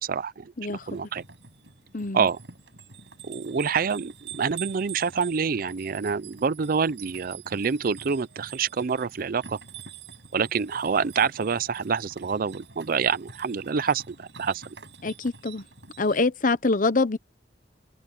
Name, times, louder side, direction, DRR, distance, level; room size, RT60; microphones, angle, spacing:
voice 1, 0.0-1.2 2.1-2.4 3.2-9.6 10.3-14.6, right 5 dB, 55° right, 0.5 m, -27 dB
voice 2, 0.6-0.9 1.9-2.3 15.0-15.6 16.0-17.2, left 3 dB, 50° left, 1.0 m, -25 dB
sound 1, 0.6-16.2, right 7 dB, 90° right, 7.2 m, -46 dB
head